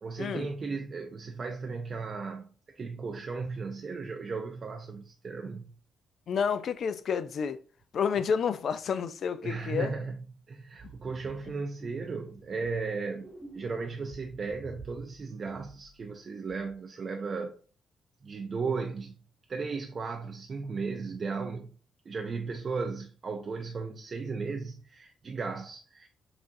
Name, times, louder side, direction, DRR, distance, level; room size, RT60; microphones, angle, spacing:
voice 1, 0.0-5.7 9.4-10.2 10.5-17.6 18.2-19.1 19.5-21.7 22.1-26.1, right 4 dB, 40° right, 0.5 m, -36 dB
voice 2, 6.3-7.6 7.9-9.9 10.8-10.9, left 6 dB, 60° left, 0.4 m, -30 dB
sound 1, 10.8-11.5 11.8-12.8 13.1-15.2 15.4-16.1 16.5-16.7, right 3 dB, 15° right, 1.0 m, -51 dB
5.9 x 2.5 x 2.6 m
cardioid pair, 90°, 0 cm